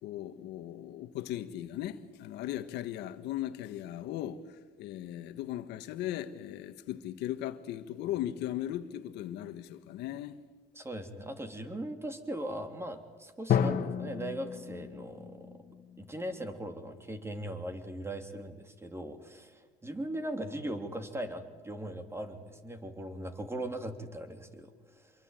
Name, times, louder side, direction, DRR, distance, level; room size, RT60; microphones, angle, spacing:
voice 1, 0.0-10.4, left 12 dB, 85° left, 1.4 m, -38 dB
voice 2, 10.7-15.6 16.0-25.1, right 1 dB, 15° right, 3.3 m, -39 dB
Drum, 13.5-17.2, left 8 dB, 55° left, 2.0 m, -33 dB
26.0 x 23.0 x 9.1 m
cardioid pair, 110°, 17 cm